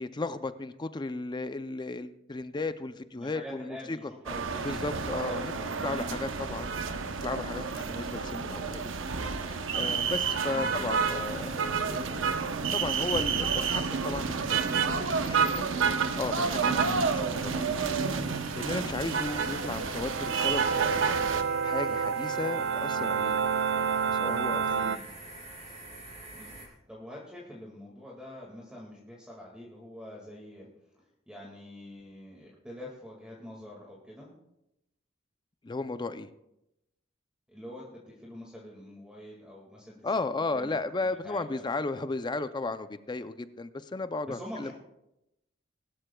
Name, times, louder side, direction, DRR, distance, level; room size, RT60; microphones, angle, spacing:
voice 1, 0.0-4.1 4.6-5.5 5.8-6.7 7.2-8.9 9.5-12.3 12.7-15.7 16.2-23.5 23.7-24.9 35.6-36.3 40.0-44.7, left 3 dB, 25° left, 12 dB, 0.4 m, -35 dB
voice 2, 3.2-7.0 10.5-10.9 16.9-17.0 24.7-25.0 26.3-26.5 26.9-30.7 31.3-34.3 37.5-40.7 41.0-41.6 44.3-44.7, left 1 dB, 5° right, -3 dB, 1.9 m, -45 dB
sound 1, 4.3-21.4, right 5 dB, 80° right, 0.8 m, -30 dB
sound 2, 13.4-26.7, right 1 dB, 35° right, 3.7 m, -48 dB
sound 3, 20.0-25.0, right 6 dB, 65° right, 0.4 m, -29 dB
20.5 x 12.5 x 2.3 m, 0.88 s
head